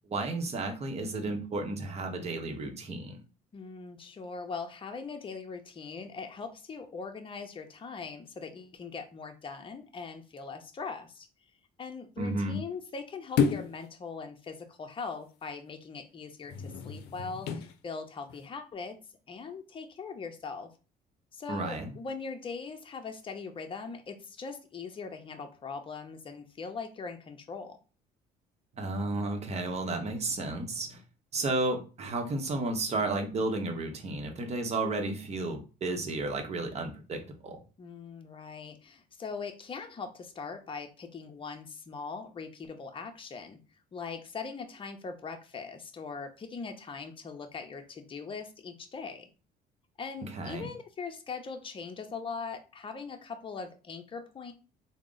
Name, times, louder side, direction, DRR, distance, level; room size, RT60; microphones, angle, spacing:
voice 1, 0.1-3.2 12.2-12.6 21.5-21.9 28.8-31.0 31.3-37.6 50.2-50.7, right 2 dB, 40° right, 4 dB, 0.8 m, -32 dB
voice 2, 3.5-11.3 11.8-19.0 19.3-20.7 21.3-27.8 37.8-43.6 43.9-49.3 50.0-54.5, left 5 dB, 30° left, 5 dB, 0.7 m, -41 dB
sound 1, 13.4-13.8 16.4-17.7 18.3-18.4, left 6 dB, 85° left, 0.5 m, -30 dB
3.7 x 2.1 x 3.8 m, 0.34 s
cardioid pair, 110°, 17 cm